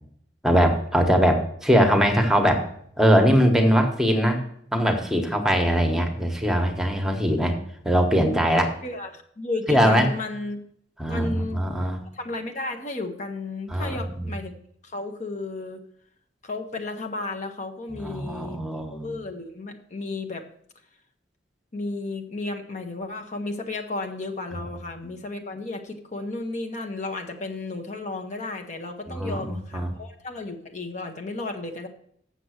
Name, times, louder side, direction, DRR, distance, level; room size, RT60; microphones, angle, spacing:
voice 1, 0.4-2.7 3.0-4.4 4.7-7.6 7.8-8.7 9.7-10.1 11.0-12.0 13.7-14.3 17.9-19.1 29.1-29.9, equal, 5° right, 4 dB, 1.1 m, -21 dB
voice 2, 8.6-10.6 11.1-11.7 12.1-14.5 14.8-15.8 16.4-18.6 18.9-20.5 21.7-31.9, left 2 dB, 45° left, 4 dB, 0.9 m, -33 dB
7.6 x 6.7 x 6.3 m, 0.67 s
head